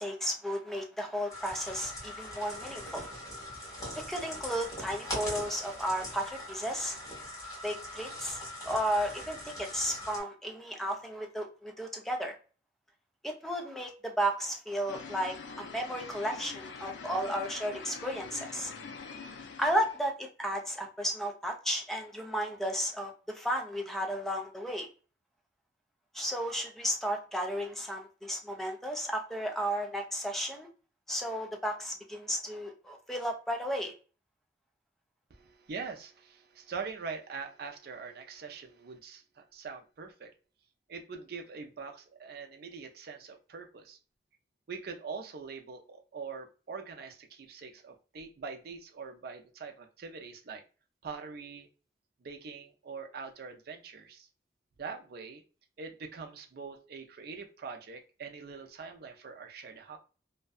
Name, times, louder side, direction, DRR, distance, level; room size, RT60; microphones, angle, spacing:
voice 1, 0.0-3.1 4.0-7.0 7.6-12.3 13.2-18.7 19.6-24.9 26.1-30.7 31.1-33.9, equal, ahead, 2 dB, 0.4 m, -33 dB
sound 1, 1.3-10.2, equal, 20° left, 1.2 m, -41 dB
sound 2, 14.9-20.1, left 5 dB, 80° left, 0.4 m, -45 dB
voice 2, 35.3-40.3 40.9-44.0 44.7-50.6 51.0-51.7 52.2-54.3 54.8-55.4 55.8-60.0, right 5 dB, 60° right, 4 dB, 0.4 m, -43 dB
2.6 x 2.1 x 2.2 m, 0.37 s
head